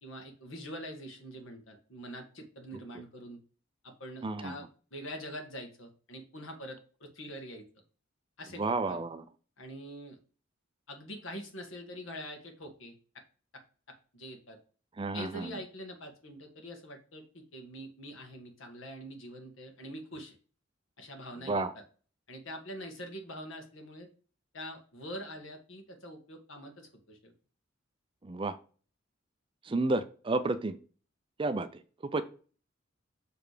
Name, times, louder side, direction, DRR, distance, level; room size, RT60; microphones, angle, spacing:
voice 1, 0.0-3.4 3.8-7.6 8.4-8.6 8.9-9.0 9.6-10.2 10.9-12.9 14.1-14.6 15.1-20.4 21.0-21.6 22.3-24.1 24.5-27.3, equal, 75° left, 4 dB, 1.6 m, -44 dB
voice 2, 4.2-4.6 8.6-9.2 15.0-15.6 21.5-21.7 28.2-28.6 29.6-30.8 31.4-32.2, right 2 dB, 25° right, 11 dB, 0.4 m, -31 dB
6.8 x 3.4 x 5.0 m, 0.39 s
head